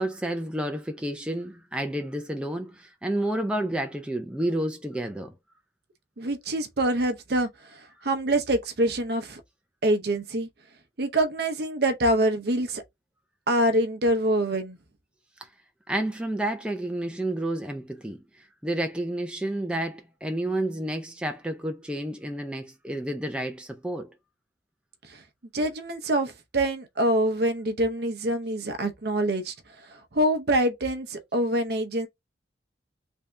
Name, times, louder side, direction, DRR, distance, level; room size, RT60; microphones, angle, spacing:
voice 1, 0.0-5.3 15.9-18.2 18.6-24.1, right 1 dB, 5° right, 0.5 m, -30 dB
voice 2, 6.2-9.4 9.8-10.5 11.0-12.8 13.5-14.8 25.1-25.2 25.5-32.1, right 1 dB, 60° right, 0.7 m, -25 dB
3.5 x 2.7 x 3.2 m
head